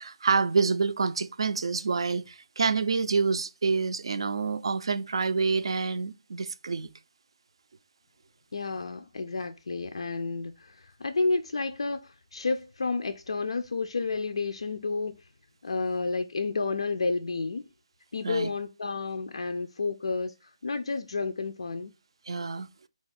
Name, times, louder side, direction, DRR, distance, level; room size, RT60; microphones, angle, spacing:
voice 1, 0.0-6.9 18.2-18.5 22.3-22.7, right 4 dB, 55° right, 0.4 m, -27 dB
voice 2, 8.5-15.3 15.6-17.7 18.1-21.9, left 3 dB, 65° left, 0.3 m, -31 dB
3.8 x 2.3 x 4.1 m
figure-of-eight pair, 165°, 3 cm